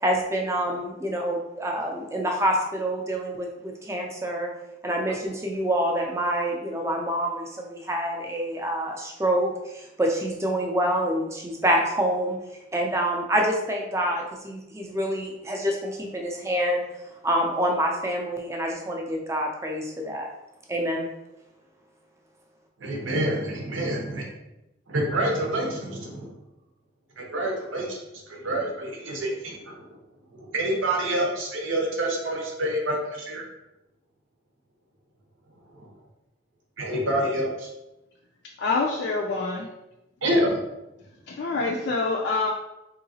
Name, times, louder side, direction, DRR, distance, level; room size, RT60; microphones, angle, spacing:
voice 1, 0.0-4.5 4.8-12.4 12.7-16.8 17.2-20.3 20.7-21.1, right 1 dB, 15° right, 1 dB, 0.4 m, -26 dB
voice 2, 22.8-24.2 24.9-26.3 27.2-28.0 28.3-29.9 30.3-33.4 35.8-35.9 36.8-37.7 40.2-40.7, right 1 dB, 85° right, -1 dB, 0.8 m, -27 dB
voice 3, 38.6-39.7 41.3-42.5, left 3 dB, 60° left, -1 dB, 0.4 m, -26 dB
3.8 x 2.8 x 2.7 m, 0.93 s
head